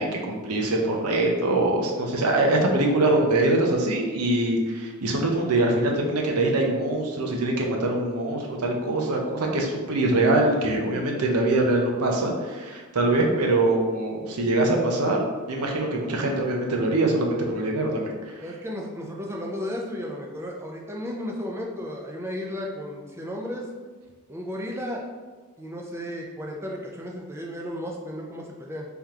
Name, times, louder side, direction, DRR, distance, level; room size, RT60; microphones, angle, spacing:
voice 1, 0.0-18.4, right 2 dB, 80° right, 1 dB, 0.6 m, -23 dB
voice 2, 18.4-23.7 24.3-25.0 25.6-28.9, left 1 dB, 10° right, -1 dB, 0.4 m, -34 dB
3.5 x 2.9 x 3.6 m, 1.4 s
head